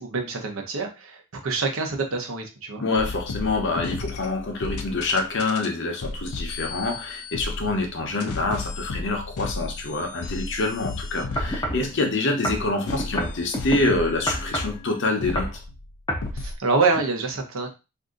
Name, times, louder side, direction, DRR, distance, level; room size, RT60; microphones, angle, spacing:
voice 1, 0.0-2.8 16.3-17.7, right 4 dB, 65° right, 3 dB, 0.8 m, -26 dB
voice 2, 2.8-15.5, left 2 dB, 55° left, 3 dB, 0.8 m, -26 dB
sound 1, 3.0-5.7 6.0-14.9 15.2-16.0 16.2-16.6, left 3 dB, 90° left, 0.5 m, -34 dB
sound 2, 11.4-11.9 12.4-13.8 14.3-14.8 15.2-15.6 16.1-16.3 16.9-17.0, equal, 20° left, 0.6 m, -28 dB
2.7 x 2.6 x 3.7 m, 0.28 s
head